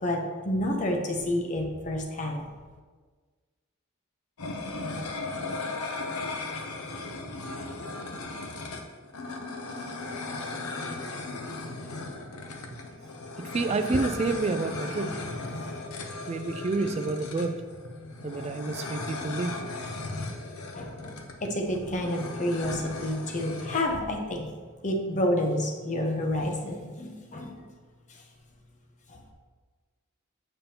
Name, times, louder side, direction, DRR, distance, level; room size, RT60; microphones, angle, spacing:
voice 1, 0.0-2.5 20.7-24.5 24.8-27.6 28.1-28.2 29.1-29.2, left 1 dB, 35° left, 1 dB, 0.8 m, -29 dB
sound 1, 4.4-23.8, left 3 dB, 85° left, 0.7 m, -37 dB
voice 2, 13.4-15.3 16.3-17.6 18.2-19.7, right 3 dB, 30° right, 6 dB, 0.3 m, -29 dB
6.9 x 5.4 x 2.9 m, 1.5 s
head